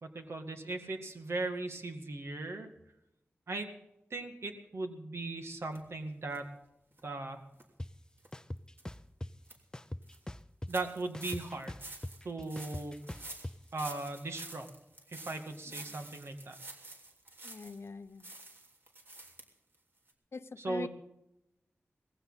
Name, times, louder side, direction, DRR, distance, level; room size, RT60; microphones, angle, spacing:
voice 1, 0.0-2.7 3.5-3.7 4.1-6.5 7.0-7.4 10.7-11.8 12.2-12.9 13.7-14.7 15.1-16.6 20.6-20.9, right 2 dB, 65° right, 5 dB, 2.1 m, -38 dB
sound 1, 5.7-5.8 6.3-6.4 6.9-7.0 7.5-7.6 8.2-8.3 8.8-8.9 9.2-9.5 10.0-10.2 10.7-17.9 18.2-19.4 19.7-19.8 20.1-20.2, right 2 dB, 50° right, 3.2 m, -49 dB
sound 2, 7.8-7.9 8.3-9.3 9.7-10.8 11.1-13.5, left 1 dB, 15° left, 0.6 m, -41 dB
voice 2, 17.4-18.3 20.3-20.9, left 4 dB, 65° left, 12 dB, 0.8 m, -43 dB
19.0 x 15.0 x 4.1 m, 0.86 s
wide cardioid pair, 60°, 5 cm